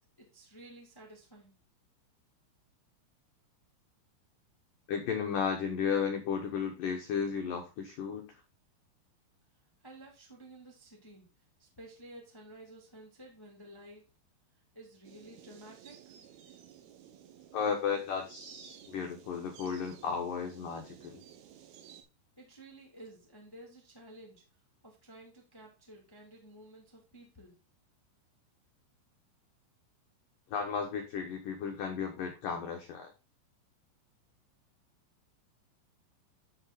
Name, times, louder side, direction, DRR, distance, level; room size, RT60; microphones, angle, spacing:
voice 1, 0.0-1.6 9.8-11.2 11.6-14.1 14.7-16.1 22.4-24.4 24.8-27.6, right 1 dB, 10° left, -1 dB, 1.5 m, -53 dB
voice 2, 4.9-8.4 17.5-21.2 30.5-33.1, left 6 dB, 75° left, 3 dB, 1.9 m, -34 dB
sound 1, 15.0-22.0, right 10 dB, 65° right, 2.7 m, -54 dB
12.0 x 4.9 x 4.0 m, 0.28 s
omnidirectional pair, 5.6 m